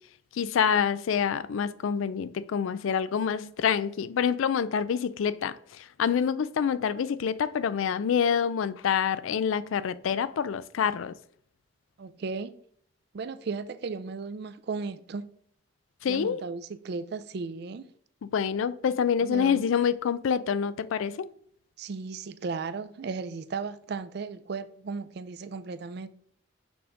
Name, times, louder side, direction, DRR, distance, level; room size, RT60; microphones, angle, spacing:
voice 1, 0.3-11.2 16.0-16.4 18.3-21.3, left 7 dB, 75° left, 0.3 m, -27 dB
voice 2, 12.0-12.6 13.1-15.3 16.1-17.9 19.2-19.6 21.8-26.1, right 4 dB, 50° right, 0.4 m, -35 dB
6.0 x 3.5 x 5.1 m
head